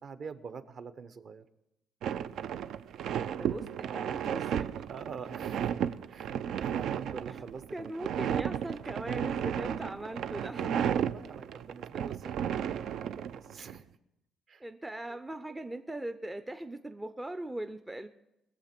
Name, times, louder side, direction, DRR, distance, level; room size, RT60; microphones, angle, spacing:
voice 1, 0.0-1.4 4.9-5.7 6.1-7.9 10.9-13.9 14.5-14.6 15.1-15.2 15.5-15.6, right 6 dB, 45° right, 12 dB, 0.8 m, -45 dB
sound 1, 2.0-13.8, right 9 dB, 70° right, 0.4 m, -34 dB
voice 2, 3.2-4.7 7.7-10.9 14.6-18.1, right 1 dB, 10° right, 9 dB, 0.4 m, -40 dB
21.0 x 7.5 x 5.9 m, 0.88 s
cardioid pair, 155°, 0 cm